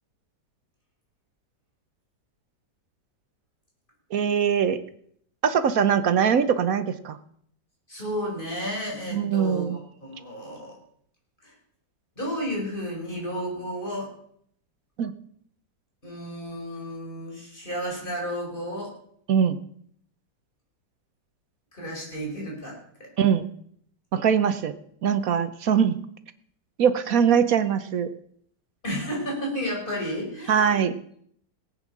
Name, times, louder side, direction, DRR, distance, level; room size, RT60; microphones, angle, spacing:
voice 1, 4.1-4.8 5.4-7.2 9.1-9.8 15.0-15.1 19.3-19.6 23.2-23.5 24.1-24.7 25.0-25.9 26.8-28.1 30.5-30.9, right 7 dB, 60° right, 12 dB, 1.1 m, -22 dB
voice 2, 7.9-10.8 11.4-11.5 12.2-14.1 16.0-18.9 21.7-23.1 28.8-30.8, equal, 30° left, -1 dB, 5.3 m, -32 dB
18.0 x 9.1 x 6.0 m, 0.65 s
omnidirectional pair, 1.9 m